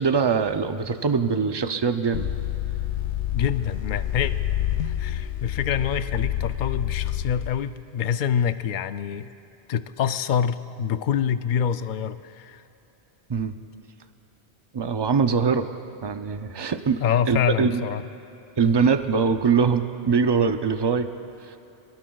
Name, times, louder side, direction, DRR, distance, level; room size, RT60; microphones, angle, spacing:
voice 1, 0.0-2.3 13.3-13.5 14.7-15.7 16.0-17.8 18.6-21.1, right 5 dB, 35° right, 8 dB, 0.4 m, -22 dB
sound 1, 2.1-7.5, left 11 dB, 85° left, 0.9 m, -28 dB
voice 2, 3.3-4.3 4.8-9.3 9.7-12.6 17.0-18.1, left 8 dB, 60° left, 12 dB, 0.6 m, -26 dB
26.0 x 18.5 x 2.3 m, 2.9 s
omnidirectional pair, 1.1 m